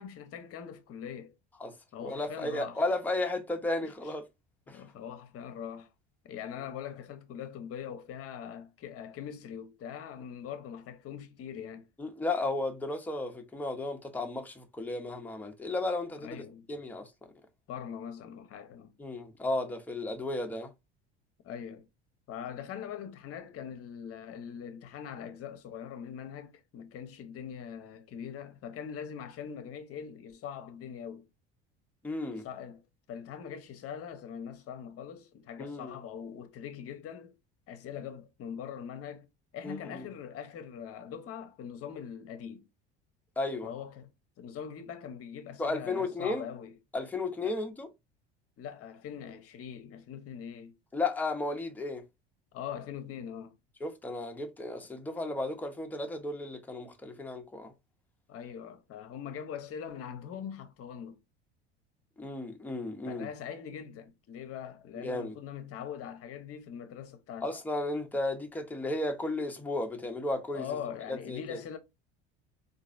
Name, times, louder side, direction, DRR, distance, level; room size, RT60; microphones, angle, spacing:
voice 1, 0.0-1.3 1.9-2.8 3.8-3.9 4.7-5.9 6.2-11.9 16.2-16.7 17.7-18.9 21.4-21.9 22.3-31.3 32.3-32.8 33.1-37.4 37.7-42.6 43.6-44.1 44.4-46.7 47.4-47.6 48.6-50.7 52.5-53.5 58.3-61.2 63.1-67.5 70.5-71.8, left 8 dB, 45° left, 0.8 m, -42 dB
voice 2, 2.0-4.3 4.7-4.8 12.0-16.4 16.7-17.1 19.0-20.7 32.0-32.5 35.6-36.0 39.6-40.1 43.4-43.7 45.6-46.5 46.9-47.9 50.9-52.0 53.8-57.7 62.2-63.3 65.0-65.4 67.4-70.8 71.1-71.6, left 2 dB, 5° left, 0.7 m, -34 dB
3.9 x 2.6 x 2.4 m
hypercardioid pair, 75°, 33 cm